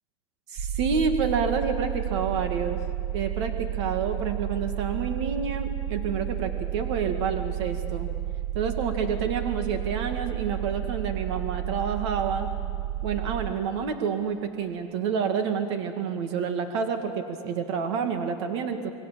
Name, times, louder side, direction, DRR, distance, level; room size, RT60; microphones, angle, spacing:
voice 1, 0.5-2.8 3.1-8.1 8.5-12.5 13.0-18.9, right 6 dB, 75° right, 6 dB, 2.0 m, -28 dB
sound 1, 0.6-13.5, right 12 dB, 35° right, 1.1 m, -31 dB
28.0 x 21.5 x 7.5 m, 2.4 s
cardioid pair, 175°, 14 cm